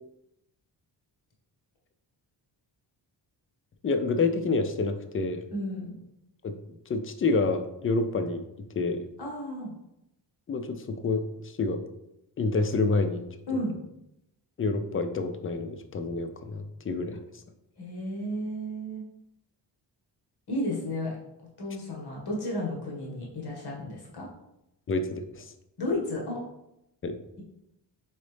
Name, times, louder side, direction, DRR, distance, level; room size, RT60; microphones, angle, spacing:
voice 1, 3.8-5.4 6.4-6.5 6.9-8.4 8.7-9.0 10.5-11.8 12.4-13.2 14.6-17.2 24.9-25.5 27.0-27.2, left 3 dB, 30° left, 7 dB, 0.5 m, -28 dB
voice 2, 5.5-5.9 9.2-9.7 13.5-13.8 17.8-19.0 20.5-21.2 21.6-24.3 25.8-26.4, left 1 dB, 60° left, -3 dB, 1.7 m, -32 dB
4.2 x 3.8 x 3.3 m, 0.86 s
cardioid pair, 105°, 44 cm